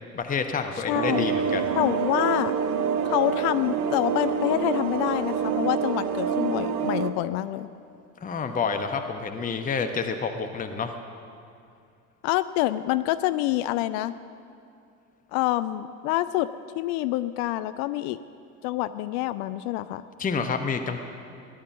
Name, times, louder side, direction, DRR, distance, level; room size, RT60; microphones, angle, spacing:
voice 1, 0.1-1.7 8.2-11.0 20.2-21.0, left 5 dB, 20° left, 6 dB, 1.1 m, -28 dB
voice 2, 0.9-1.2 1.8-2.6 3.1-7.7 12.2-14.2 15.3-16.5 16.8-18.2 18.6-20.0, left 15 dB, 50° left, 14 dB, 0.5 m, -26 dB
sound 1, 0.9-7.1, right 6 dB, 60° right, 1.1 m, -27 dB
17.5 x 11.5 x 7.2 m, 2.5 s
figure-of-eight pair, 75°, 45 cm